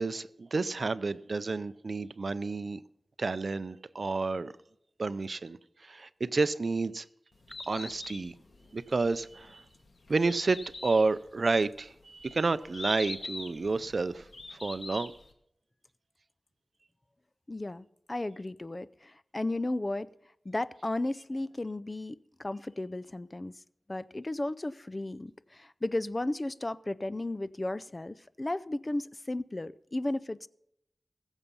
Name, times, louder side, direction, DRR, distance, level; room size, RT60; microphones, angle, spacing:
voice 1, 0.0-2.8 3.2-4.5 5.0-5.6 5.8-7.1 7.7-8.3 8.7-9.6 10.1-14.3 14.5-15.1, right 3 dB, 60° right, 15 dB, 0.5 m, -30 dB
Bird, 7.3-15.3, left 2 dB, 65° left, 1.9 m, -43 dB
voice 2, 17.5-20.1 20.5-23.5 23.9-30.5, left 2 dB, 30° left, 15 dB, 0.5 m, -34 dB
21.0 x 7.2 x 5.5 m, 0.76 s
wide cardioid pair, 80°, 0 cm